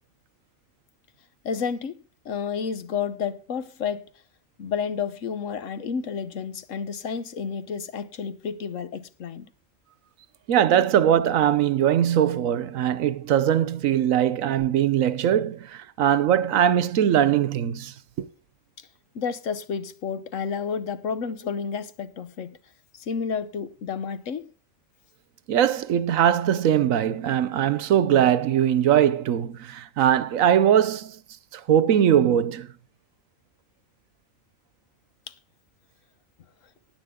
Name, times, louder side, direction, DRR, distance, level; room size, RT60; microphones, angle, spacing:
voice 1, 1.4-2.0 2.2-4.0 4.6-9.5 19.1-22.6 23.0-24.5 35.3-35.4, left 6 dB, 70° left, 1.3 m, -30 dB
voice 2, 10.5-18.3 25.5-31.2 31.5-32.7, right 10 dB, 80° right, 1.2 m, -21 dB
16.5 x 9.5 x 3.6 m
omnidirectional pair, 1.4 m